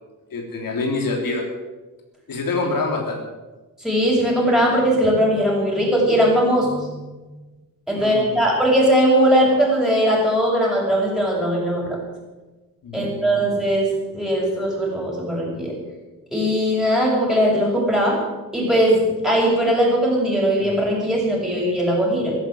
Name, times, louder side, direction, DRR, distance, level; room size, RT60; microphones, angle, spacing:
voice 1, 0.3-1.4 2.3-3.2 7.9-8.3 12.8-13.4, left 3 dB, 75° left, 1 dB, 3.4 m, -26 dB
voice 2, 3.8-7.0 7.9-12.0 12.9-15.7 16.3-18.2 18.5-22.4, equal, ahead, -3 dB, 6.9 m, -19 dB
15.0 x 12.0 x 7.8 m, 1.2 s
wide cardioid pair, 115°, 34 cm